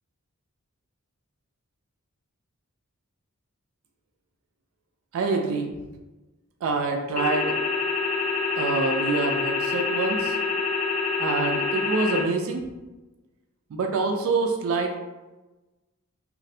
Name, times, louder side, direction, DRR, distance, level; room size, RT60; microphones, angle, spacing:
voice 1, 5.1-5.7 6.6-7.6 8.6-10.4 11.2-12.6 13.7-14.9, right 3 dB, 65° right, 2 dB, 0.3 m, -26 dB
sound 1, 7.2-12.2, left 4 dB, 35° left, 0.4 m, -26 dB
2.5 x 2.0 x 2.6 m, 1.1 s
head